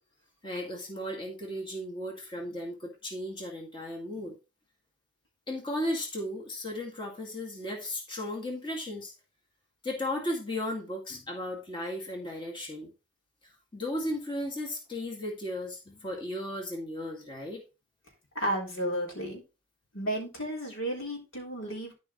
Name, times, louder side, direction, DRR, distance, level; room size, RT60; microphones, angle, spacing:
voice 1, 0.4-4.4 5.5-9.1 9.8-12.9 13.7-17.6, left 1 dB, 25° left, 0 dB, 2.2 m, -35 dB
voice 2, 18.4-19.4 19.9-21.9, right 1 dB, 90° left, 0 dB, 3.7 m, -33 dB
12.5 x 5.3 x 3.1 m, 0.28 s
head